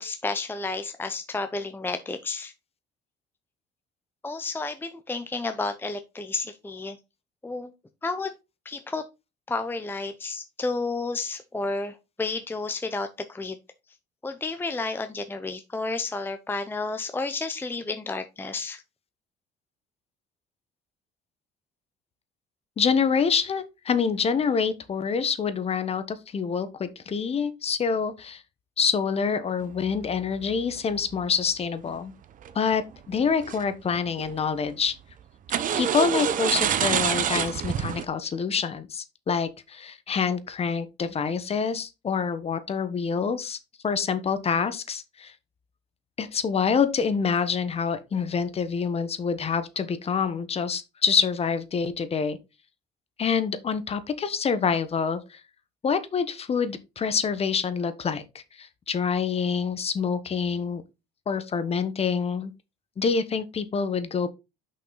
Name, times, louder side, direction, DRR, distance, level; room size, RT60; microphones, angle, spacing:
voice 1, 0.0-2.5 4.2-7.0 7.4-7.7 8.0-8.3 8.6-9.0 9.5-13.6 14.2-18.8, left 3 dB, 10° left, 0.7 m, -31 dB
voice 2, 22.8-28.4 28.8-32.1 32.5-35.0 35.7-43.6 43.8-45.3 46.2-52.4 53.2-55.4 55.8-60.8 61.3-62.5 63.0-64.3, left 6 dB, 35° left, 1.1 m, -26 dB
sound 1, 29.7-31.2 32.4-32.7 33.1-33.6 33.9-34.5 35.5-38.0, right 9 dB, 50° right, 0.8 m, -27 dB
6.1 x 5.5 x 4.0 m
cardioid pair, 110°, 17 cm